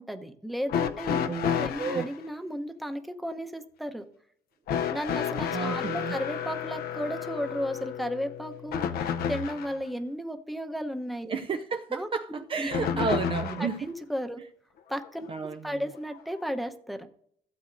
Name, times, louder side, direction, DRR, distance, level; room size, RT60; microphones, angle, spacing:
voice 1, 0.0-4.1 4.9-11.5 11.9-12.1 12.4-13.2 13.6-14.4 14.9-15.3 15.6-17.1, equal, ahead, 0.9 m, -34 dB
sound 1, 0.7-2.1 4.7-9.8 12.7-13.8 15.0-15.1 16.2-16.3, left 8 dB, 65° left, 0.7 m, -31 dB
voice 2, 1.8-2.1 5.5-6.1 11.3-13.8 15.3-15.8, right 5 dB, 30° right, 0.5 m, -31 dB
16.0 x 7.8 x 2.6 m
cardioid pair, 110°, 17 cm